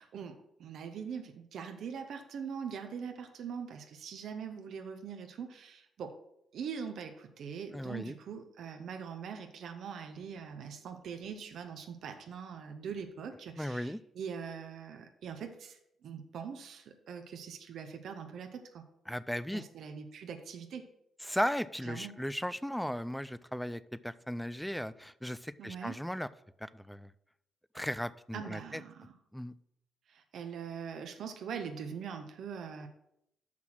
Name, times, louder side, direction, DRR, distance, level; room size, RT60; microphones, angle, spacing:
voice 1, 0.0-6.1 6.5-15.8 16.0-18.8 19.5-20.9 21.9-22.1 25.6-26.0 28.3-29.1 30.1-32.9, right 7 dB, 70° right, 6 dB, 0.8 m, -42 dB
voice 2, 7.7-8.1 13.6-14.0 19.1-19.6 21.2-26.3 26.6-27.1 27.7-28.8 29.3-29.5, equal, ahead, 17 dB, 0.3 m, -36 dB
6.0 x 5.9 x 6.0 m, 0.79 s
cardioid pair, 90°, 0 cm